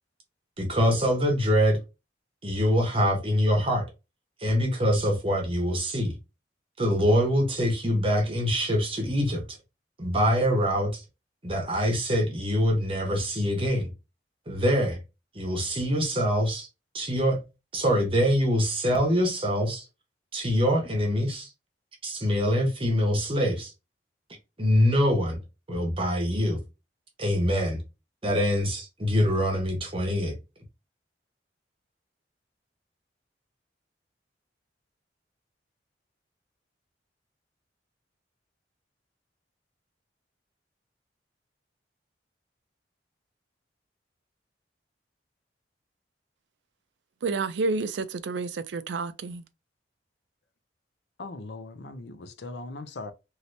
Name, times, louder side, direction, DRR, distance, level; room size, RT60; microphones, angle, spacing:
voice 1, 0.6-1.8 2.4-3.8 4.4-6.1 6.8-9.4 10.0-11.0 11.4-13.9 14.5-15.0 15.3-16.7 16.9-17.4 17.7-19.8 20.3-21.5 22.0-23.7 24.6-25.4 25.7-26.6 27.2-27.8 28.2-30.3, equal, 30° right, 1.0 m, -24 dB
voice 2, 47.2-49.4, right 3 dB, 75° right, 0.4 m, -29 dB
voice 3, 51.2-53.1, left 2 dB, 65° left, 0.5 m, -39 dB
3.1 x 2.8 x 2.6 m
head